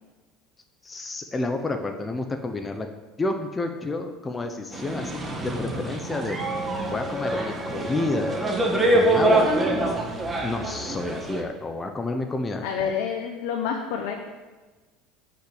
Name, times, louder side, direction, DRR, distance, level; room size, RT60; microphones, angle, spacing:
voice 1, 0.8-2.9 3.2-5.2 5.4-6.4 6.9-8.4 8.9-10.0 10.4-12.9, left 2 dB, 15° left, 5 dB, 0.8 m, -30 dB
sound 1, 4.7-11.4, right 1 dB, 15° right, 1.6 m, -25 dB
voice 2, 12.6-14.2, left 7 dB, 75° left, 2 dB, 1.1 m, -28 dB
10.0 x 5.9 x 8.5 m, 1.3 s
cardioid pair, 140°, 0 cm